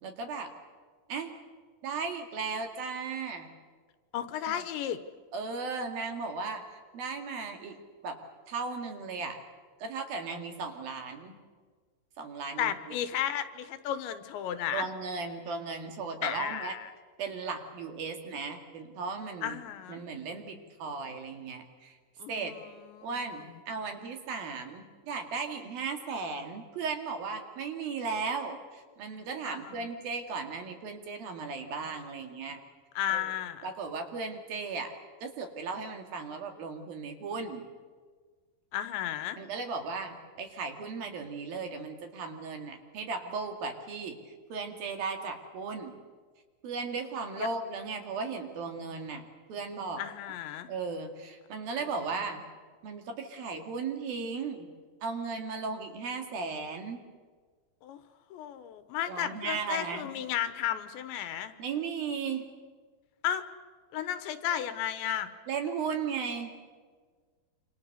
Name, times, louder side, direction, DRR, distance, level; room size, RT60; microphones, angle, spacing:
voice 1, 0.0-0.5 1.1-1.3 1.8-3.5 4.5-4.6 5.3-6.7 6.9-7.8 8.0-8.2 8.5-9.4 9.8-11.4 12.2-12.7 14.7-16.7 17.2-19.6 19.9-22.0 22.3-22.5 23.0-32.6 33.1-33.3 33.6-34.9 35.2-37.7 39.4-45.9 46.6-50.0 50.7-52.4 52.8-54.7 55.0-57.0 59.1-60.1 61.6-62.5 65.5-66.5, right 4 dB, 55° right, 5 dB, 3.7 m, -36 dB
voice 2, 4.1-5.0 12.6-14.9 16.2-16.9 19.4-20.0 22.2-23.4 29.5-29.9 33.0-33.7 38.7-39.4 47.4-47.5 50.0-50.7 57.8-58.0 58.3-61.5 63.2-63.4 63.9-65.3, left 10 dB, 80° left, 11 dB, 3.3 m, -34 dB
27.0 x 27.0 x 6.7 m, 1.5 s
omnidirectional pair, 5.3 m